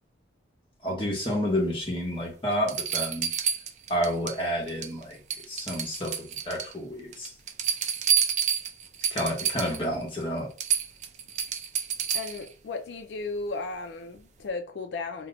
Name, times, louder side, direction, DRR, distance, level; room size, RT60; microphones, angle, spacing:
voice 1, 0.8-3.3 3.9-5.2 5.5-7.3 9.1-10.5, equal, 30° left, 1.0 m, -30 dB
sound 1, 2.0-2.1 2.7-4.4 4.7-5.0 5.3-6.7 7.1-9.8 10.2-10.3 10.6-12.5 14.2-14.3, right 7 dB, 40° right, 0.4 m, -29 dB
voice 2, 12.1-15.3, left 3 dB, 75° left, 0.4 m, -35 dB
2.8 x 2.1 x 3.7 m
head